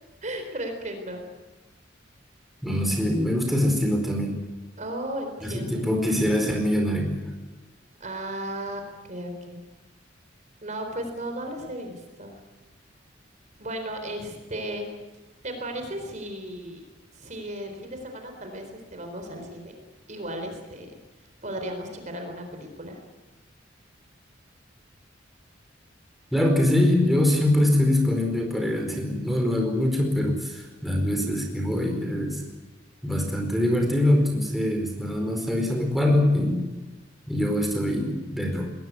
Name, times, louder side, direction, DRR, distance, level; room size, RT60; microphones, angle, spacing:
voice 1, 0.2-1.2 4.8-5.9 8.0-9.6 10.6-12.4 13.6-14.9 15.4-16.9 17.1-19.8 20.1-20.9 21.4-23.0, right 1 dB, 40° right, 5 dB, 4.0 m, -35 dB
voice 2, 2.6-4.4 5.4-7.4 26.3-32.4 33.0-36.6 37.3-38.7, left 1 dB, ahead, 2 dB, 4.6 m, -23 dB
20.5 x 20.5 x 9.5 m, 1.2 s
head